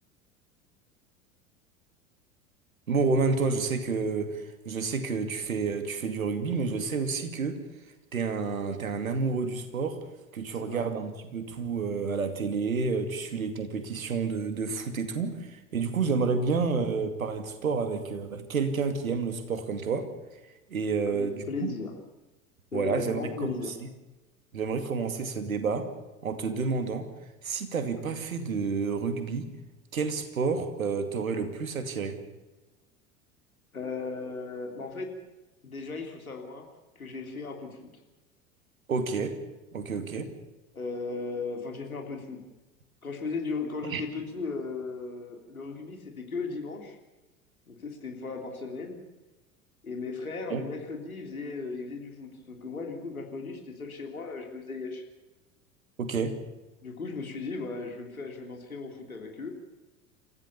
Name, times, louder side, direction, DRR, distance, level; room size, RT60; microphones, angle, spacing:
voice 1, 2.9-7.6 8.1-10.0 10.3-20.1 20.7-21.7 22.7-23.6 24.5-25.9 26.2-27.1 27.4-29.5 29.9-32.2 38.9-39.4 39.7-40.3 43.8-44.0 50.5-50.6 56.0-56.4, right 4 dB, 75° right, 8 dB, 2.6 m, -29 dB
voice 2, 21.1-21.9 22.7-23.7 33.7-35.1 35.6-36.7 37.0-37.9 40.7-42.4 43.0-47.0 47.7-49.0 49.8-55.0 56.8-59.5, left 4 dB, 80° left, 3 dB, 3.5 m, -36 dB
28.0 x 15.0 x 7.0 m, 1.1 s
figure-of-eight pair, 80°, 42 cm